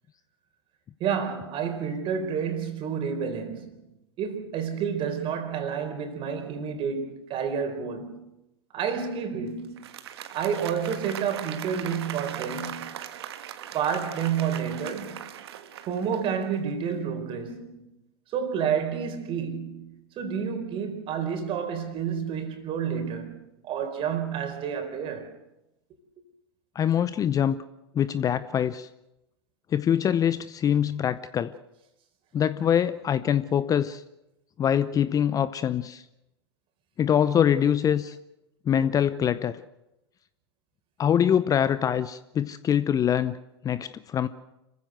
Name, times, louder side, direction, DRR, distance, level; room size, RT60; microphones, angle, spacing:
voice 1, 1.0-3.8 4.2-8.2 8.7-9.8 10.3-13.0 13.7-15.3 15.8-17.8 18.3-25.3, right 7 dB, 40° right, 4.1 m, -30 dB
Applause, 9.6-16.6, right 10 dB, 65° right, 1.5 m, -39 dB
voice 2, 26.7-27.6 27.9-28.9 29.7-31.5 32.3-34.0 34.6-36.0 37.0-38.2 38.7-39.6 41.0-43.4 43.6-44.3, left 9 dB, 25° left, 0.7 m, -24 dB
26.5 x 15.5 x 7.8 m
hypercardioid pair, 100°, 14 cm